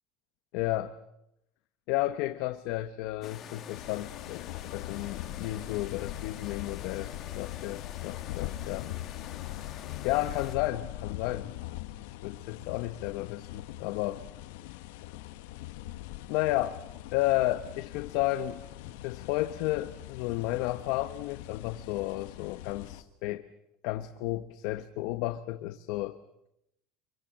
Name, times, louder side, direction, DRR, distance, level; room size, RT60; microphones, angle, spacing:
voice 1, 0.5-0.9 1.9-4.5 4.7-8.9 10.0-11.5 12.2-14.2 16.3-16.8 17.1-23.5 23.8-26.2, left 16 dB, 55° left, 10 dB, 1.0 m, -32 dB
sound 1, 3.2-10.6, left 9 dB, 30° left, 1.9 m, -46 dB
sound 2, 3.7-23.0, left 15 dB, 85° left, 1.4 m, -42 dB
27.5 x 23.5 x 7.5 m, 0.81 s
cardioid pair, 175°, 0 cm